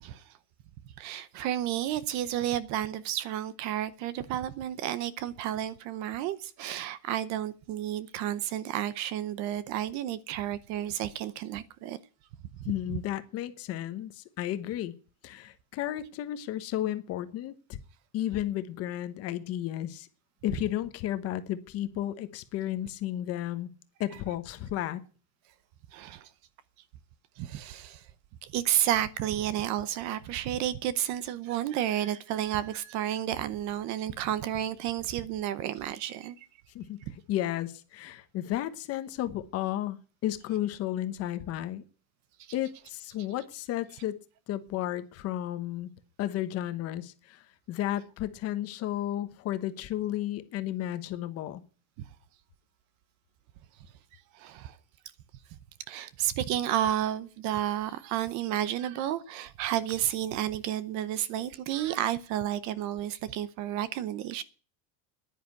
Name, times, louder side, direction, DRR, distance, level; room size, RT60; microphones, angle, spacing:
voice 1, 1.0-12.0 25.9-26.3 27.4-28.0 28.4-36.5 54.3-54.8 55.9-64.4, right 12 dB, 40° right, 0.8 m, -31 dB
voice 2, 12.7-14.9 15.2-17.8 18.1-20.1 20.4-23.7 24.0-25.0 36.7-41.8 42.5-44.2 44.5-45.9 46.2-51.6, left 13 dB, 35° left, 1.0 m, -33 dB
10.5 x 9.9 x 8.3 m
cardioid pair, 180°, 43 cm